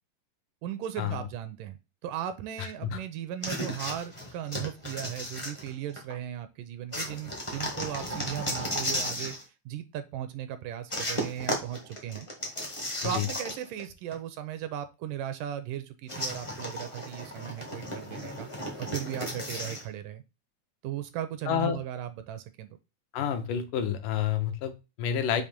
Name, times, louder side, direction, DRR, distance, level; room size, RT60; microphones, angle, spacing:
voice 1, 0.6-1.8 2.0-9.4 9.7-12.3 13.0-18.5 18.8-20.2 20.8-22.8, right 11 dB, 80° right, 10 dB, 2.2 m, -37 dB
voice 2, 2.6-3.0 13.0-13.3 21.5-21.8 23.1-25.4, left 9 dB, 75° left, 7 dB, 2.4 m, -29 dB
sound 1, 3.4-6.1 6.9-9.4 10.9-13.8 14.1-14.2 16.1-19.8, equal, 40° left, 0.4 m, -35 dB
6.8 x 2.9 x 5.1 m, 0.27 s
omnidirectional pair, 3.9 m